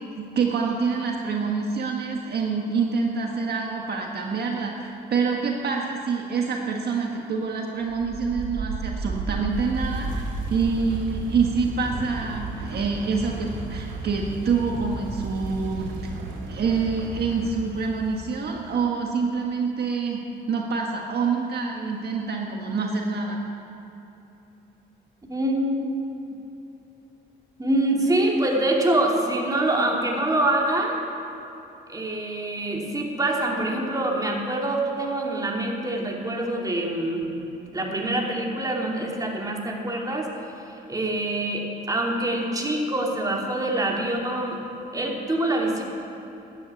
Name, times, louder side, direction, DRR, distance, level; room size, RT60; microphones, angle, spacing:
voice 1, 0.0-16.1 16.4-23.4, right 5 dB, 55° right, 0 dB, 1.5 m, -26 dB
sound 1, 7.8-18.6, right 3 dB, 80° right, 2.7 m, -33 dB
voice 2, 25.3-26.0 27.6-31.0 31.9-37.2 37.7-40.3 40.7-44.6 44.9-45.8, right 1 dB, 20° right, -1 dB, 2.7 m, -25 dB
12.5 x 10.5 x 8.4 m, 3.0 s
cardioid pair, 90°, 20 cm